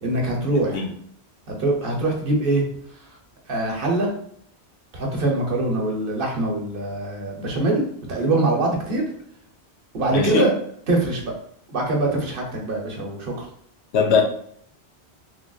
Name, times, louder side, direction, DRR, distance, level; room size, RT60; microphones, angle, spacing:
voice 1, 0.0-0.8 1.5-2.6 3.5-4.1 4.9-9.1 9.9-10.5 10.9-11.3 11.7-13.3, right 2 dB, 60° right, 0 dB, 0.9 m, -23 dB
voice 2, 0.5-0.9 10.1-10.5 13.9-14.2, left 6 dB, 85° left, 3 dB, 0.9 m, -21 dB
3.2 x 2.4 x 2.3 m, 0.64 s
omnidirectional pair, 1.1 m